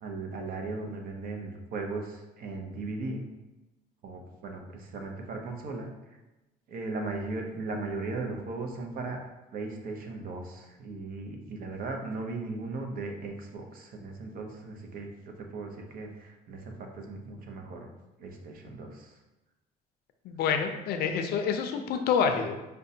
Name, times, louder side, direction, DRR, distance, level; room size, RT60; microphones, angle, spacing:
voice 1, 0.0-3.2 4.0-5.9 6.7-9.2 9.5-17.9 18.2-19.1, right 3 dB, 60° right, 2 dB, 0.7 m, -37 dB
voice 2, 20.2-22.6, left 6 dB, 70° left, 6 dB, 0.4 m, -27 dB
5.1 x 2.2 x 2.7 m, 1.0 s
cardioid pair, 110°, 17 cm